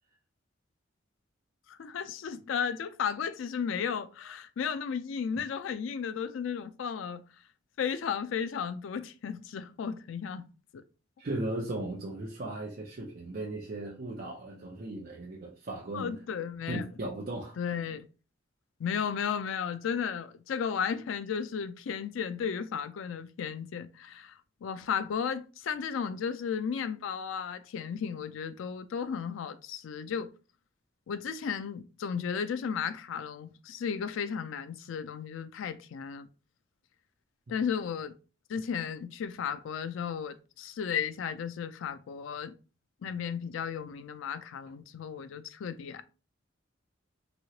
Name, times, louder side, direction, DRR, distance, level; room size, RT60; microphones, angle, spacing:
voice 1, 1.7-7.2 7.8-10.4 10.7-10.8 15.9-16.9 17.6-18.1 18.8-30.3 31.1-36.3 37.5-38.2 38.5-42.5 43.0-46.0, left 7 dB, 85° left, 0.4 m, -34 dB
voice 2, 11.2-16.2 16.7-17.6 37.5-37.6, right 2 dB, 45° right, 0.5 m, -37 dB
3.0 x 2.8 x 2.8 m
head